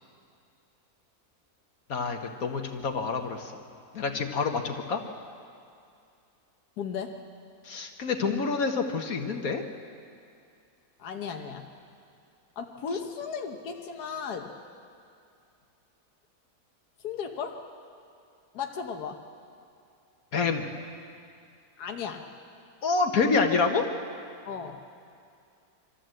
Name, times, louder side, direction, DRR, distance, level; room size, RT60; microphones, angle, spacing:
voice 1, 1.9-3.6 3.9-5.0 7.6-9.6 20.3-20.7 22.8-23.9, left 4 dB, 65° left, 4 dB, 1.5 m, -27 dB
voice 2, 6.8-7.2 11.0-11.7 12.6-14.5 17.0-17.6 18.5-19.2 21.8-22.3 24.4-24.8, left 6 dB, 80° left, 3 dB, 1.6 m, -35 dB
24.0 x 14.0 x 7.7 m, 2.5 s
omnidirectional pair, 1.7 m